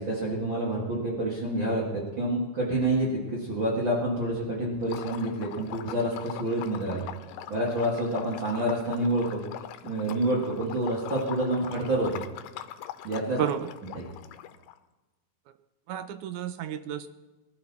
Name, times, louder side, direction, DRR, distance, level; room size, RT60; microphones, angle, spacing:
voice 1, 0.0-7.1 7.5-9.4 9.8-12.2 13.0-13.4 13.9-14.0, right 1 dB, 40° right, -5 dB, 2.7 m, -28 dB
Liquid, 4.8-14.7, left 12 dB, 85° left, 2.3 m, -42 dB
voice 2, 13.4-13.7 15.9-17.1, right 9 dB, 80° right, 11 dB, 2.0 m, -31 dB
22.0 x 12.5 x 4.3 m, 1.1 s
omnidirectional pair, 3.7 m